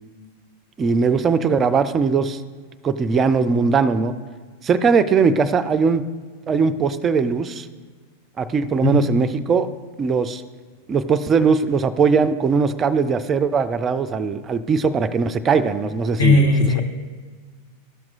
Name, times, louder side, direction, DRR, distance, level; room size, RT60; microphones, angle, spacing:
voice 1, 0.8-2.4 2.8-4.1 4.6-6.0 6.5-7.7 8.4-9.7 10.0-10.4 10.9-16.8, right 5 dB, 25° right, 12 dB, 0.4 m, -20 dB
voice 2, 16.2-16.8, left 2 dB, 65° left, 0 dB, 1.6 m, -16 dB
13.5 x 5.9 x 2.5 m, 1.5 s
figure-of-eight pair, 90°, 0 cm